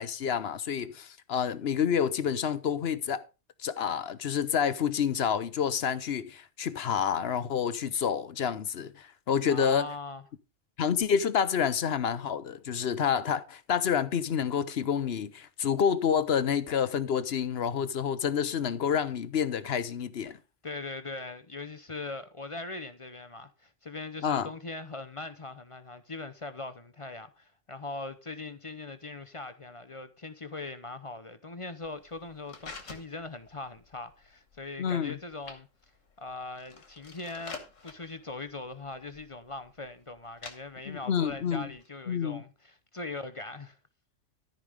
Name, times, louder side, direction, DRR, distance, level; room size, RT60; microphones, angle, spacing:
voice 1, 0.0-3.2 3.6-9.9 10.8-20.4 24.2-24.5 34.8-35.2 40.9-41.7 42.1-42.4, left 7 dB, 60° left, 1.0 m, -28 dB
voice 2, 9.5-10.2 20.6-35.7 36.2-43.8, left 3 dB, 35° left, 0.7 m, -41 dB
sound 1, 31.8-41.9, left 4 dB, 80° left, 2.1 m, -49 dB
13.5 x 5.4 x 5.2 m
omnidirectional pair, 1.3 m